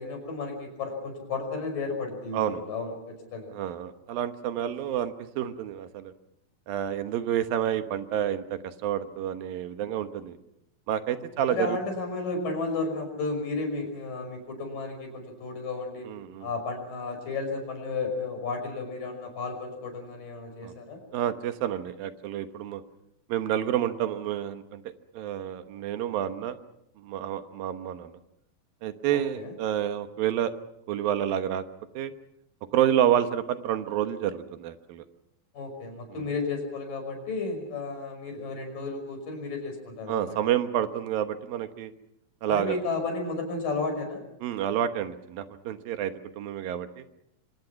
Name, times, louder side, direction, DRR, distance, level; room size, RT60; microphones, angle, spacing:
voice 1, 0.0-3.5 11.2-16.1 16.4-21.0 29.1-29.5 35.5-40.4 42.5-44.2, left 3 dB, 65° left, 4 dB, 7.3 m, -33 dB
voice 2, 3.5-6.1 6.7-10.3 10.9-11.8 16.1-16.5 20.6-20.7 21.1-22.8 23.3-24.8 25.1-26.6 27.0-28.2 28.8-30.5 30.9-31.6 31.9-32.1 32.7-35.0 36.2-36.3 40.1-41.9 42.4-42.8 44.4-47.0, right 10 dB, 75° right, 9 dB, 2.9 m, -29 dB
27.5 x 25.5 x 5.9 m, 0.80 s
omnidirectional pair, 4.2 m